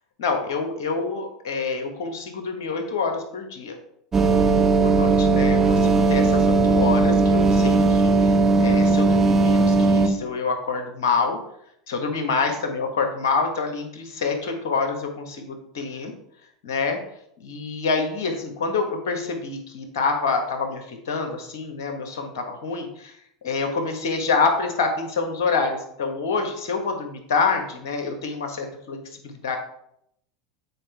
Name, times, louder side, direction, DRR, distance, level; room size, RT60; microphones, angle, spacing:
voice 1, 0.2-3.8 4.8-11.4 11.9-16.1 16.6-17.0 17.4-23.1 23.4-29.0 29.2-29.6, left 4 dB, 65° left, 4 dB, 1.5 m, -27 dB
sound 1, 4.1-10.1, right 3 dB, 20° right, 0.9 m, -18 dB
8.9 x 4.5 x 3.5 m, 0.73 s
hypercardioid pair, 80°, 2 cm